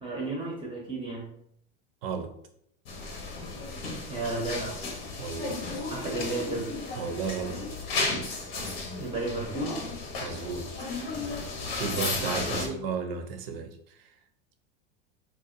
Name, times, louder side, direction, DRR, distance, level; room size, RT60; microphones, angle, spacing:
voice 1, 0.0-1.3 4.1-4.8 5.9-6.7 9.0-9.8 12.4-12.8, right 2 dB, 15° right, -4 dB, 0.5 m, -33 dB
voice 2, 2.0-2.3 5.2-5.6 7.0-7.6 10.2-10.7 11.7-14.1, right 6 dB, 70° right, 6 dB, 0.5 m, -34 dB
sound 1, 2.9-12.7, left 3 dB, 80° left, 0.8 m, -34 dB
2.5 x 2.1 x 2.6 m, 0.71 s
supercardioid pair, 120°, 29 cm